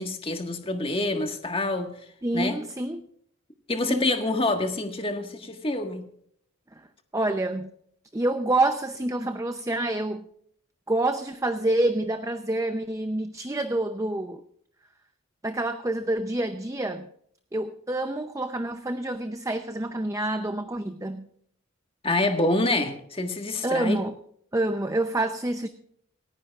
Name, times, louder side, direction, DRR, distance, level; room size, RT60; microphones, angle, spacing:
voice 1, 0.0-1.9 2.3-2.6 3.7-6.1 22.0-24.0, left 2 dB, 25° left, 5 dB, 1.6 m, -27 dB
voice 2, 2.2-3.0 3.9-4.1 7.1-7.7 8.1-10.3 10.9-14.4 15.4-17.1 17.5-21.2 23.6-24.1 24.5-25.7, right 2 dB, 15° right, 9 dB, 0.6 m, -27 dB
28.0 x 10.0 x 2.4 m, 0.66 s
head